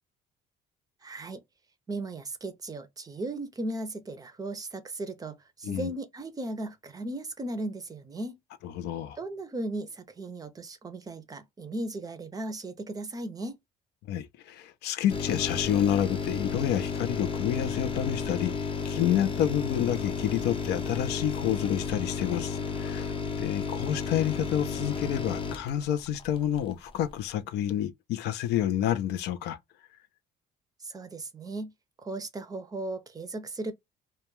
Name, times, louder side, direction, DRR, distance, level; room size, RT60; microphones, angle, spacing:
voice 1, 1.0-1.4 1.9-8.4 9.2-13.6 30.8-31.7 32.0-33.7, right 2 dB, 20° right, 0.5 m, -36 dB
voice 2, 8.6-9.2 14.1-29.6, left 10 dB, 80° left, 0.4 m, -29 dB
sound 1, 15.1-26.7 27.1-27.2, left 5 dB, 30° left, 0.5 m, -33 dB
2.2 x 2.1 x 3.0 m
cardioid pair, 110°, 17 cm